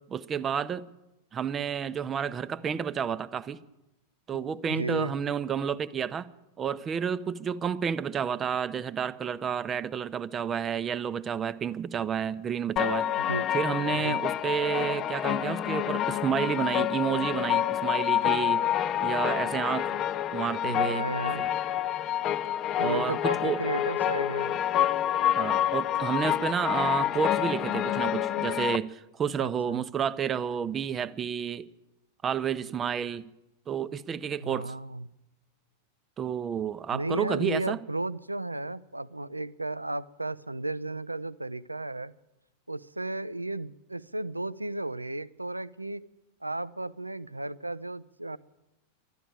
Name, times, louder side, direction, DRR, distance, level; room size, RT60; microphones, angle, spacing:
voice 1, 0.1-0.9 1.3-3.6 4.3-6.3 6.6-13.1 13.5-18.6 19.0-19.9 20.3-21.0 21.4-21.5 22.8-23.6 25.3-31.6 32.2-33.3 33.7-34.7 36.2-37.8, right 7 dB, 25° right, 0.6 m, -30 dB
voice 2, 4.3-5.1 13.2-13.5 13.9-14.2 20.6-21.4 22.8-24.6 29.4-29.8 34.4-35.1 36.9-42.1 42.7-46.0 46.4-48.4, right 2 dB, 85° right, 0.4 m, -34 dB
sound 1, 12.8-28.8, left 11 dB, 30° left, 0.5 m, -28 dB
12.0 x 11.0 x 8.9 m
figure-of-eight pair, 90°, 0 cm